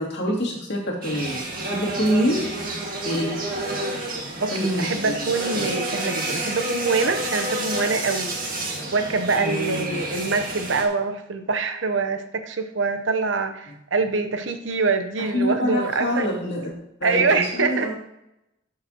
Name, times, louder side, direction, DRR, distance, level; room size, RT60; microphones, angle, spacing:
voice 1, 0.0-2.5 3.0-3.3 4.3-5.2 5.5-5.6 9.4-10.0 15.2-16.7 17.0-17.9, equal, 55° left, -4 dB, 2.6 m, -26 dB
sound 1, 1.0-10.8, right 1 dB, 45° right, 1.8 m, -29 dB
voice 2, 4.4-8.3 8.9-16.3 17.0-17.9, right 4 dB, 65° right, 7 dB, 0.8 m, -24 dB
12.5 x 5.7 x 2.9 m, 0.84 s
head